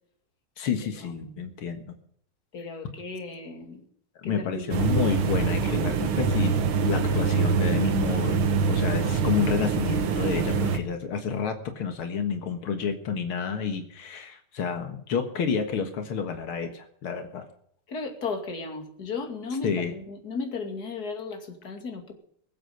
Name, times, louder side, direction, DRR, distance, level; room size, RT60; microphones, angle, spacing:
voice 1, 0.6-2.0 4.2-6.6 6.8-17.5 19.6-19.9, left 6 dB, 90° left, 6 dB, 2.4 m, -29 dB
voice 2, 2.5-3.8 4.2-4.9 15.4-15.5 17.9-22.1, left 4 dB, 45° left, 4 dB, 3.0 m, -35 dB
sound 1, 4.7-10.8, right 5 dB, 80° right, 2.2 m, -24 dB
22.0 x 8.2 x 6.6 m, 0.66 s
omnidirectional pair, 2.3 m